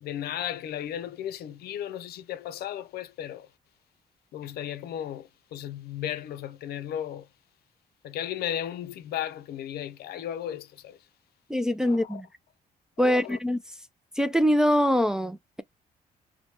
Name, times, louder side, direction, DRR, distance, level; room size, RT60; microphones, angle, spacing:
voice 1, 0.0-3.5 4.3-7.3 8.0-11.1 11.8-12.2 13.0-13.4, left 11 dB, 75° left, 0.5 m, -35 dB
voice 2, 11.5-12.3 13.0-13.6 14.2-15.6, equal, 5° right, 0.4 m, -23 dB
3.0 x 2.2 x 2.8 m
cardioid pair, 90°, 16 cm